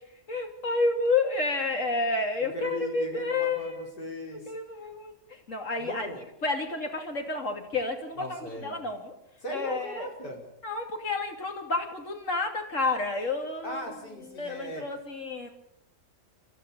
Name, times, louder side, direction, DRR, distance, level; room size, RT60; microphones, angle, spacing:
voice 1, 0.3-3.9 4.3-5.1 5.5-6.1 6.4-9.1 9.5-10.1 10.6-13.8 14.4-15.5, left 3 dB, 50° left, 3 dB, 3.1 m, -30 dB
voice 2, 2.4-4.5 5.8-6.2 8.1-8.8 9.4-10.4 13.6-14.9, equal, 85° left, 0 dB, 5.4 m, -38 dB
26.5 x 14.5 x 7.0 m, 0.78 s
omnidirectional pair, 1.8 m